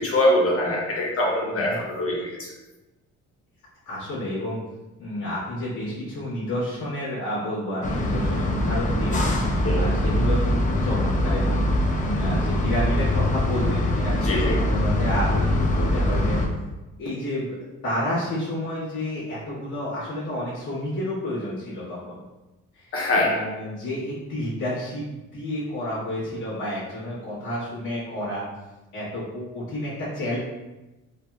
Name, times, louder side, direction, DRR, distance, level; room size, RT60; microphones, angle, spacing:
voice 1, 0.0-2.5 9.6-9.9 14.2-14.6 22.9-23.4, left 1 dB, 50° left, -3 dB, 0.9 m, -23 dB
voice 2, 1.5-1.8 3.8-4.6 5.0-11.6 12.0-16.4 17.0-17.6 17.8-22.2 22.7-28.4 28.9-30.4, left 1 dB, 85° left, -12 dB, 1.4 m, -30 dB
sound 1, 7.8-16.5, left 1 dB, 25° left, 0.4 m, -23 dB
3.3 x 2.1 x 2.4 m, 1.0 s
cardioid pair, 90°, 30 cm